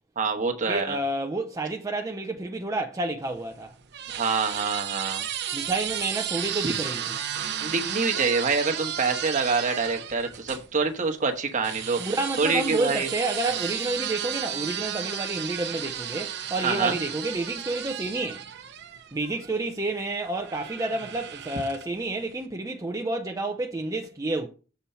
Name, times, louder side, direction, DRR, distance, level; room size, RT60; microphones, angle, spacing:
voice 1, 0.2-1.0 4.1-5.2 7.6-13.1 16.6-16.9, right 4 dB, 40° right, 1.1 m, -26 dB
voice 2, 0.7-3.7 5.5-7.2 12.0-18.4 19.1-24.5, right 2 dB, 15° right, 0.5 m, -29 dB
sound 1, 3.3-10.7 11.6-19.5 20.4-22.0, right 9 dB, 55° right, 0.8 m, -33 dB
6.9 x 4.4 x 5.5 m
head